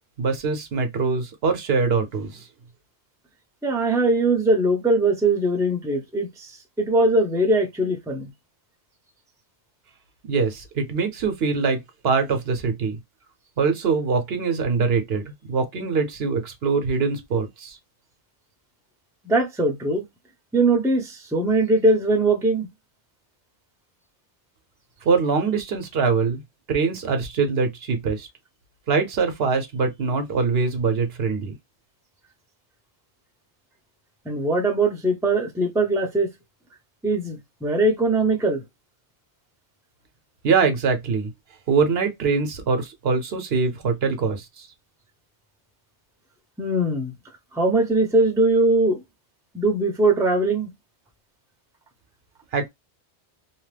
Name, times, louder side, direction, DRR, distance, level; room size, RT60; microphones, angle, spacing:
voice 1, 0.2-2.4 10.3-13.0 13.6-17.8 25.0-26.4 26.7-28.3 28.9-31.5 40.4-41.3 41.7-44.7 52.5-52.7, right 5 dB, 70° right, 0.9 m, -23 dB
voice 2, 3.6-8.3 19.2-20.0 20.5-22.7 34.2-36.3 37.0-38.6 46.6-47.1 47.5-49.0 49.5-50.7, right 2 dB, 5° right, 0.5 m, -21 dB
2.8 x 2.0 x 3.2 m
omnidirectional pair, 1.1 m